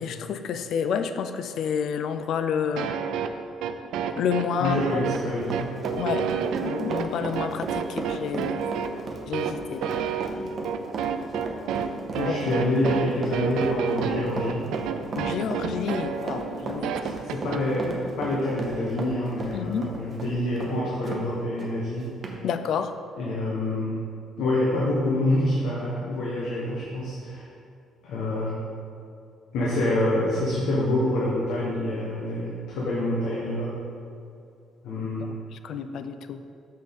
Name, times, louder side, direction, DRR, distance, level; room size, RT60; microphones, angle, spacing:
voice 1, 0.0-2.9 4.2-4.8 6.0-6.3 6.6-8.6 9.3-9.9 12.2-12.5 15.1-16.9 19.5-19.9 22.4-23.0 35.2-36.4, left 7 dB, 60° left, 10 dB, 0.3 m, -29 dB
sound 1, 2.8-17.6, right 7 dB, 80° right, 0.3 m, -30 dB
voice 2, 4.6-5.8 12.1-14.7 16.8-22.2 23.2-24.0 24.4-27.5 28.0-28.6 29.5-33.8 34.8-35.3, left 1 dB, 80° left, -5 dB, 1.2 m, -27 dB
Run, 4.6-21.2 21.6-21.7 22.2-22.4, right 3 dB, 30° right, 0.7 m, -35 dB
6.4 x 6.2 x 3.6 m, 2.5 s
cardioid pair, 160°, 0 cm